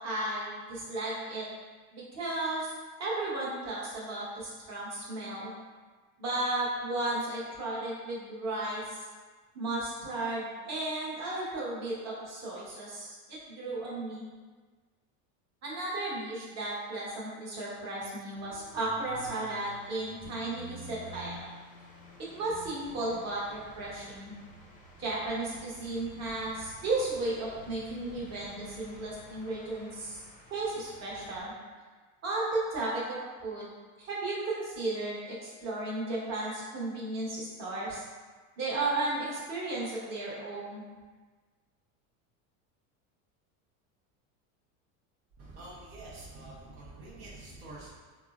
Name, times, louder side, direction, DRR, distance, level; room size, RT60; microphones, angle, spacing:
voice 1, 0.0-1.5 1.9-2.7 3.0-5.5 6.2-9.0 9.5-14.3 15.6-21.4 22.3-24.3 25.0-30.2 30.5-31.5 32.2-33.7 34.0-38.0 38.6-40.9, right 2 dB, 35° right, -6 dB, 1.1 m, -34 dB
sound 1, 18.3-31.4, equal, 20° left, 0.5 m, -51 dB
voice 2, 45.4-47.9, right 2 dB, 75° right, -6 dB, 0.9 m, -46 dB
3.7 x 2.1 x 2.4 m, 1.4 s
supercardioid pair, 100°, 43 cm